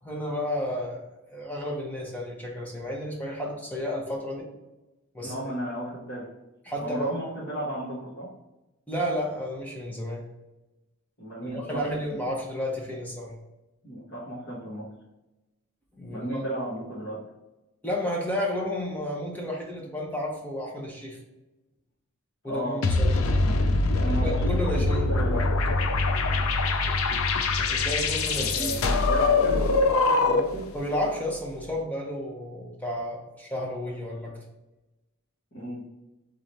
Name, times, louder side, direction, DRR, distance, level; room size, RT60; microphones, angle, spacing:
voice 1, 0.0-1.0 1.3-4.5 5.1-5.5 6.6-7.1 8.9-10.2 11.4-13.3 16.0-16.4 17.8-21.2 22.4-23.1 24.2-25.1 27.7-28.8 30.7-34.4, left 1 dB, 5° left, -2 dB, 0.8 m, -32 dB
voice 2, 5.2-6.3 6.8-8.3 11.2-12.2 13.8-14.9 16.1-17.2 22.4-22.8 24.0-24.5 25.1-25.4 28.4-30.7 35.5-35.8, right 1 dB, 50° left, -10 dB, 1.4 m, -34 dB
sound 1, 22.8-30.6, left 3 dB, 75° left, 0.5 m, -23 dB
3.8 x 3.3 x 4.1 m, 1.0 s
head